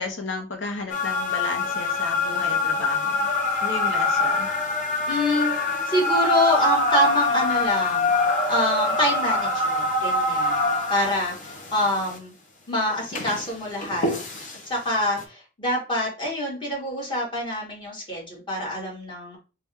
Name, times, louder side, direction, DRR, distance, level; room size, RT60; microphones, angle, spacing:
voice 1, 0.0-3.3 3.6-4.5, left 3 dB, 75° left, 0.8 m, -33 dB
sound 1, 0.9-12.2 12.9-14.6 15.2-15.3, left 2 dB, 40° left, 0.8 m, -25 dB
voice 2, 5.1-8.1 8.5-12.3 12.7-14.1 14.6-19.4, left 1 dB, 25° left, 1.6 m, -26 dB
4.1 x 2.3 x 3.6 m
head